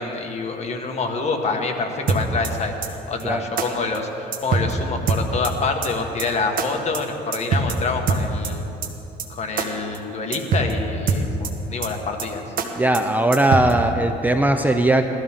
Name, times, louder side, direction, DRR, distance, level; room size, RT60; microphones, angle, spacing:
voice 1, 0.0-8.6 9.3-12.4, left 3 dB, 40° left, 3 dB, 1.6 m, -26 dB
sound 1, 2.1-2.5 2.8-2.9 3.2-3.3 3.6-3.7 3.9-4.0 4.3-4.7 5.1-5.5 5.8-5.9 6.2-6.3 6.6-6.7 6.9-7.0 7.3-7.8 8.1-8.5 8.8-8.9 9.2-9.3 9.6-9.7 9.9-10.0 10.3-10.7 11.1-11.5 11.8-11.9 12.2-12.3 12.6-12.7 12.9-13.0 13.3-13.7, right 5 dB, 55° right, 1.4 m, -22 dB
voice 2, 12.8-15.1, right 1 dB, 10° right, 5 dB, 0.6 m, -19 dB
19.0 x 13.5 x 3.7 m, 2.9 s
cardioid pair, 110°, 17 cm